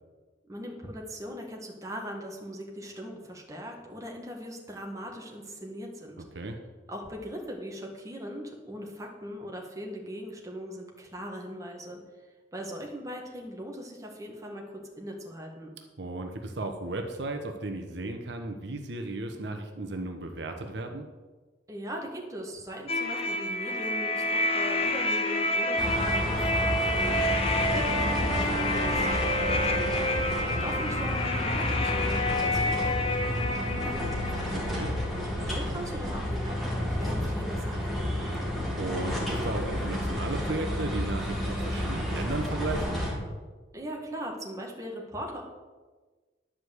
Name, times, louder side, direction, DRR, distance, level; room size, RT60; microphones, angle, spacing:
voice 1, 0.5-6.2 6.9-12.0 12.5-15.7 21.7-29.9 30.6-34.5 35.1-38.3 43.7-45.4, equal, 20° right, 0 dB, 1.7 m, -40 dB
voice 2, 6.2-6.6 16.0-21.1 34.5-34.9 38.8-43.0, right 2 dB, 70° right, 4 dB, 1.0 m, -35 dB
sound 1, 22.9-35.5, left 1 dB, 35° left, 1.2 m, -29 dB
sound 2, 25.8-43.1, equal, ahead, 2.6 m, -31 dB
11.0 x 5.2 x 7.9 m, 1.3 s
head